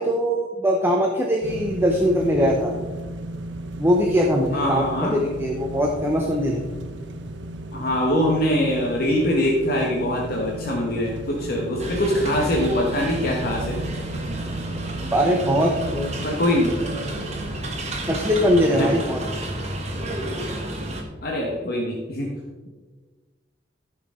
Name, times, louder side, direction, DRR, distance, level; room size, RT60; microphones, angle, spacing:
voice 1, 0.0-2.7 3.8-6.6 15.1-16.1 18.1-19.2, equal, 10° right, 0 dB, 0.8 m, -21 dB
sound 1, 1.4-21.0, right 1 dB, 80° right, 1.0 m, -36 dB
voice 2, 4.5-5.1 7.7-13.8 16.2-16.7 18.7-18.9 21.2-22.3, left 1 dB, 55° left, -2 dB, 1.3 m, -23 dB
sound 2, 11.8-21.0, right 1 dB, 40° right, 1.5 m, -31 dB
14.0 x 6.3 x 3.8 m, 1.4 s
head